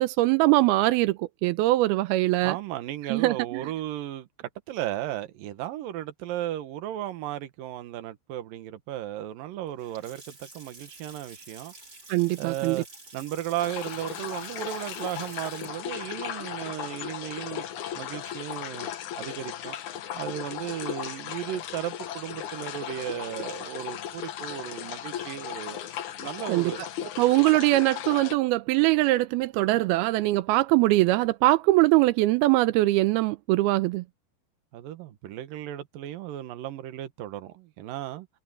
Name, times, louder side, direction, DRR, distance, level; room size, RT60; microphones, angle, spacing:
voice 1, 0.0-2.6 3.1-3.7 12.1-12.8 26.5-26.7 27.2-34.0, right 18 dB, 85° right, 2.2 m, -22 dB
voice 2, 2.4-11.7 12.4-12.9 13.1-17.7 17.9-18.9 19.1-19.8 20.2-25.8 26.2-26.8 34.7-38.3, right 13 dB, 65° right, 2.5 m, -35 dB
Water tap faucet / Sink (filling or washing) / Splash splatter, 9.7-17.8, right 2 dB, 20° right, 5.3 m, -50 dB
sound 1, 13.6-28.4, left 10 dB, 80° left, 1.7 m, -36 dB
omnidirectional pair, 5.2 m